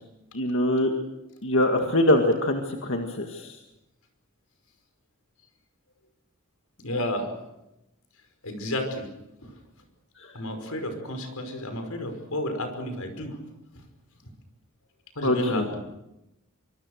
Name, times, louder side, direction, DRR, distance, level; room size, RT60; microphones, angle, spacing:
voice 1, 0.3-0.9 1.4-3.6 15.2-15.8, left 1 dB, 60° left, 3 dB, 2.0 m, -23 dB
voice 2, 6.8-7.3 8.4-9.1 9.4-9.6 10.3-13.4 15.2-15.8, left 1 dB, 80° left, 6 dB, 5.4 m, -31 dB
25.5 x 24.5 x 6.6 m, 0.93 s
head